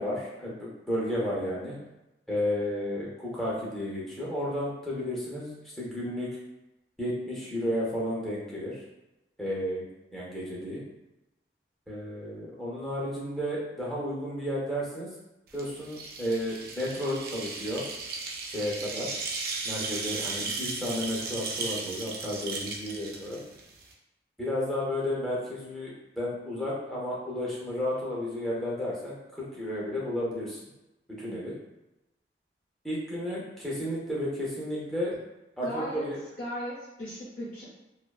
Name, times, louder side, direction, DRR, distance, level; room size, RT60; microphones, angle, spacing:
voice 1, 0.0-1.8 2.3-6.4 7.0-8.8 9.4-9.8 10.1-10.8 11.9-15.1 15.5-17.8 18.5-19.1 19.6-23.4 24.4-30.6 31.1-31.6 32.8-35.2 35.6-36.2, left 1 dB, ahead, -6 dB, 0.5 m, -32 dB
sound 1, 15.5-23.9, right 3 dB, 55° right, 0.3 m, -36 dB
voice 2, 35.6-36.1 36.4-37.6, equal, 45° left, -10 dB, 0.7 m, -36 dB
2.4 x 2.3 x 2.3 m, 0.96 s
head